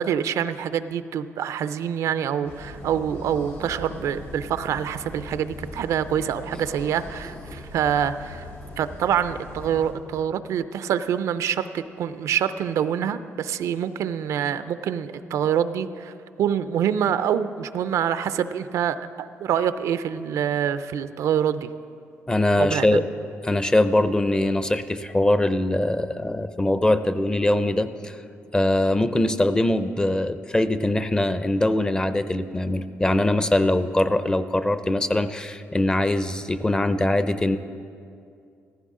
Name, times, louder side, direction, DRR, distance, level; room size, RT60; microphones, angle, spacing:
voice 1, 0.0-8.5 8.8-21.7 22.6-23.0, right 9 dB, 80° right, 12 dB, 0.4 m, -26 dB
sound 1, 2.4-9.9, left 2 dB, 70° left, 3.0 m, -40 dB
voice 2, 22.3-23.0 23.4-28.2 28.5-37.6, left 1 dB, 15° left, 12 dB, 0.5 m, -22 dB
15.0 x 14.5 x 3.7 m, 2.4 s
cardioid pair, 110°, 5 cm